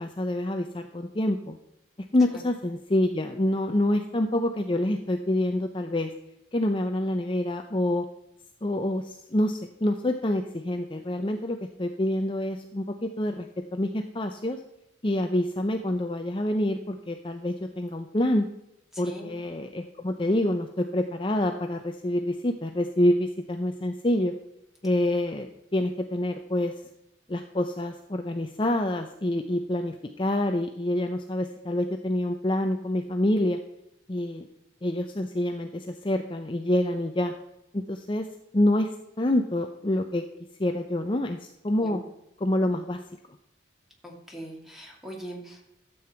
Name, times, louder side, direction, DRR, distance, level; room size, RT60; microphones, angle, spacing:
voice 1, 0.0-1.6 2.1-6.1 6.5-8.0 8.6-13.5 13.7-14.6 15.0-18.5 19.0-24.3 24.8-26.7 27.3-33.6 34.1-34.5 34.8-37.3 37.7-38.3 38.5-38.9 39.2-40.2 40.6-42.0 42.4-43.0, left 1 dB, 25° left, 5 dB, 0.6 m, -27 dB
voice 2, 18.9-19.4 41.8-42.0 44.0-45.7, right 1 dB, ahead, -1 dB, 2.5 m, -41 dB
13.0 x 7.8 x 4.4 m, 0.84 s
head